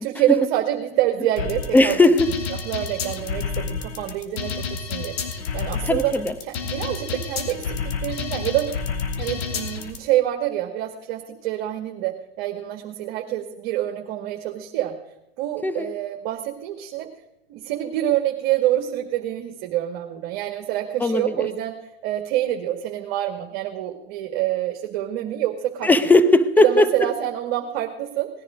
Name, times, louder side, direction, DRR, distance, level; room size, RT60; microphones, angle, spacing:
voice 1, 0.0-2.0 2.7-6.1 6.4-8.7 9.2-14.9 15.4-17.1 17.5-21.8 22.0-25.9 26.6-28.3, right 13 dB, 50° right, 3 dB, 2.0 m, -26 dB
sound 1, 1.4-10.0, left 5 dB, 70° left, 2.9 m, -29 dB
voice 2, 1.7-2.3 5.8-6.3 15.6-15.9 21.0-21.5 25.8-26.9, left 2 dB, 5° left, 12 dB, 0.9 m, -17 dB
18.5 x 10.5 x 5.1 m, 0.88 s
hypercardioid pair, 120°, 32 cm